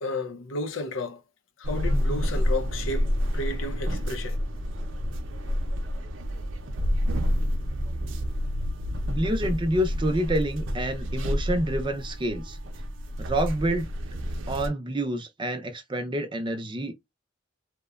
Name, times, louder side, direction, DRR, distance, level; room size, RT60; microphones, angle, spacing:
voice 1, 0.0-1.2 1.6-4.4, left 2 dB, 85° left, 0.5 m, -32 dB
sound 1, 1.6-14.7, equal, 80° right, 0.6 m, -29 dB
voice 2, 9.1-12.6 13.2-13.9 14.5-17.0, right 1 dB, 25° right, 0.5 m, -28 dB
2.9 x 2.1 x 2.3 m
head